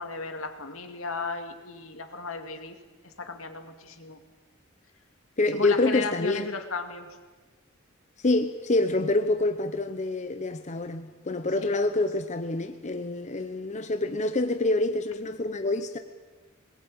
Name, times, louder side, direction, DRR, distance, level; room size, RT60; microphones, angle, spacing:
voice 1, 0.0-2.8 3.0-4.2 5.5-7.1 11.6-11.8, left 4 dB, 75° left, 6 dB, 2.3 m, -35 dB
voice 2, 5.4-6.5 8.2-16.0, left 2 dB, 35° left, 8 dB, 0.9 m, -26 dB
22.0 x 20.5 x 8.9 m, 1.3 s
head